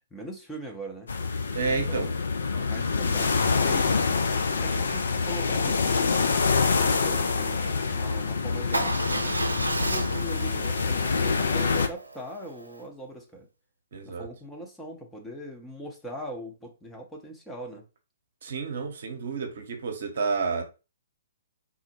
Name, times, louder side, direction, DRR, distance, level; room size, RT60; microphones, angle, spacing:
voice 1, 0.1-1.1 1.9-2.0 2.5-4.1 4.5-6.4 6.8-13.5 14.0-17.8, right 1 dB, 5° left, 0.6 m, -41 dB
sound 1, 1.1-11.9, left 4 dB, 65° left, 0.4 m, -26 dB
voice 2, 1.5-2.1 4.5-4.8 9.6-9.9 13.9-14.3 18.4-20.6, right 4 dB, 55° right, 0.7 m, -31 dB
Motorcycle / Engine starting / Idling, 8.7-12.8, right 1 dB, 85° right, 0.4 m, -32 dB
3.7 x 2.1 x 2.9 m
figure-of-eight pair, 120°, 0 cm